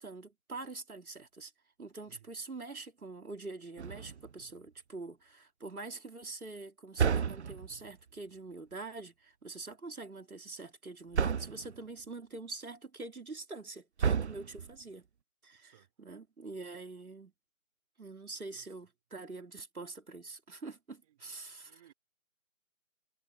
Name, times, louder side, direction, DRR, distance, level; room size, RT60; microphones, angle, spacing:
voice 1, 0.0-1.5 1.8-15.0 15.4-17.3 18.0-21.8, right 3 dB, 90° right, 3.6 m, -45 dB
sound 1, 3.8-4.4 7.0-7.9 11.1-11.8 14.0-14.8, right 7 dB, 50° right, 0.7 m, -31 dB
voice 2, 18.3-18.7 21.0-21.4 21.6-21.9, right 12 dB, 25° right, 3.6 m, -63 dB
figure-of-eight pair, 155°, 42 cm